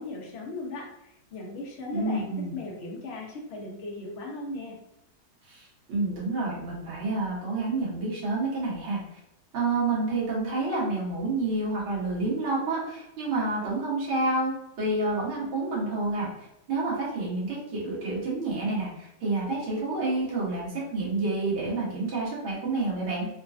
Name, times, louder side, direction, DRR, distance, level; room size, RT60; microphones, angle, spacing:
voice 1, 0.0-4.8, left 2 dB, 55° left, -2 dB, 0.7 m, -37 dB
voice 2, 1.9-2.5 5.5-9.0 9.5-23.3, right 2 dB, 85° right, -6 dB, 2.0 m, -29 dB
4.4 x 2.4 x 2.5 m, 0.87 s
omnidirectional pair, 2.2 m